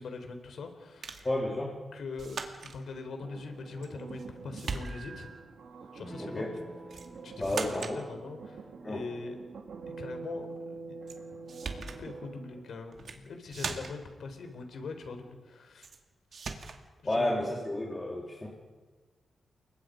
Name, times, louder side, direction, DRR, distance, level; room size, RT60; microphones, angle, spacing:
voice 1, 0.0-1.3 1.9-5.3 5.9-6.6 7.2-9.4 10.0-10.5 10.9-11.2 11.7-15.9 17.0-17.6, left 4 dB, 65° left, 6 dB, 3.8 m, -42 dB
sound 1, 1.0-1.3 2.2-2.8 3.8-4.3 4.6-5.3 6.9-7.1 7.4-8.0 11.1-11.2 11.5-12.0 12.9-13.2 13.5-14.1 15.8-16.0 16.3-16.8, right 5 dB, 55° right, 2.2 m, -39 dB
voice 2, 1.2-1.8 6.2-6.5 7.4-8.0 8.8-9.0 17.0-18.5, left 1 dB, 20° left, -3 dB, 3.6 m, -31 dB
sound 2, 3.2-12.7, right 4 dB, 70° right, 2.8 m, -46 dB
Electric guitar / Strum, 6.0-11.1, right 2 dB, 10° right, 6.9 m, -51 dB
29.0 x 23.0 x 5.2 m, 1.3 s
wide cardioid pair, 140°, 0 cm